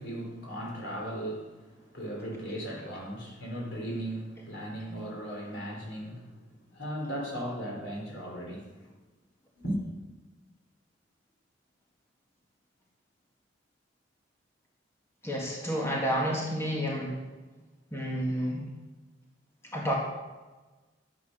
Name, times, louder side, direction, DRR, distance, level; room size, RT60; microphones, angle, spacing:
voice 1, 0.0-6.4 6.7-8.9 9.6-9.8, equal, 70° left, -1 dB, 3.8 m, -37 dB
voice 2, 15.2-17.2 17.9-18.7 19.7-20.0, equal, 15° left, -3 dB, 2.1 m, -30 dB
12.0 x 8.6 x 6.5 m, 1.2 s
head